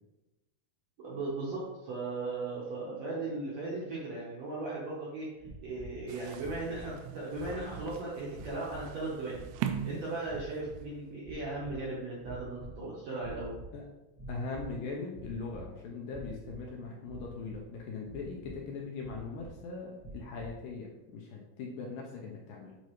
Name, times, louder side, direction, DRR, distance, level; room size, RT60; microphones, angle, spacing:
voice 1, 1.0-5.3 5.6-9.4 9.8-13.5, right 2 dB, 65° right, -6 dB, 1.7 m, -37 dB
sound 1, 5.4-6.0 6.3-7.0 7.3-7.9 8.3-8.9 9.3-9.8 10.2-10.9 11.2-11.9 12.2-12.8 13.1-13.7 14.1-14.8 15.1-15.7 16.1-16.6 17.1-17.7 18.0-18.6 19.0-19.5 20.0-20.6, right 2 dB, 15° left, 0.5 m, -47 dB
sound 2, 6.1-10.8, right 9 dB, 85° right, 2.5 m, -41 dB
voice 2, 14.3-22.8, left 4 dB, 75° left, -1 dB, 2.1 m, -40 dB
8.3 x 4.6 x 3.1 m, 1.0 s
omnidirectional pair, 4.5 m